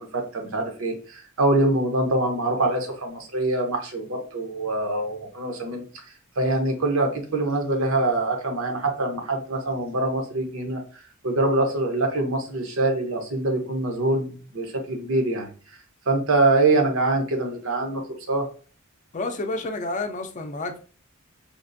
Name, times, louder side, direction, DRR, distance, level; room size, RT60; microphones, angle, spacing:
voice 1, 0.1-5.8 6.4-10.8 11.2-15.5 16.1-18.0 18.3-18.4, right 2 dB, 70° right, 0.8 m, -24 dB
voice 2, 19.1-20.8, left 2 dB, 35° left, 0.5 m, -30 dB
5.1 x 2.4 x 2.5 m
head